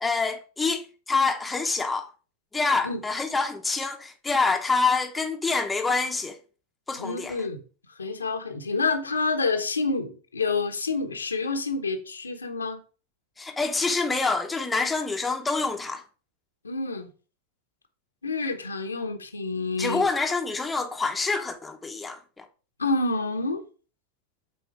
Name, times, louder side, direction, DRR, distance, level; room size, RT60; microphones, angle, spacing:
voice 1, 0.0-2.1 2.5-6.4 6.9-7.3 13.4-16.0 19.8-22.4, left 4 dB, 10° left, 0.9 m, -26 dB
voice 2, 7.0-7.6 8.0-12.8 16.6-17.1 18.2-20.1 22.8-23.6, left 3 dB, 75° left, 1.1 m, -28 dB
7.1 x 4.3 x 4.8 m
figure-of-eight pair, 90°, 0 cm